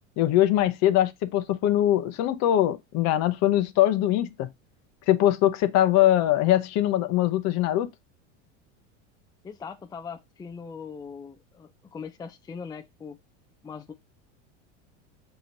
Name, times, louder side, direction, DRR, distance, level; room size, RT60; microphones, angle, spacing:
voice 1, 0.2-4.5 5.1-7.9, left 13 dB, 45° left, 0.8 m, -22 dB
voice 2, 9.4-13.2 13.6-13.9, left 6 dB, 10° left, 0.4 m, -40 dB
6.6 x 3.0 x 2.6 m
hypercardioid pair, 105°, 36 cm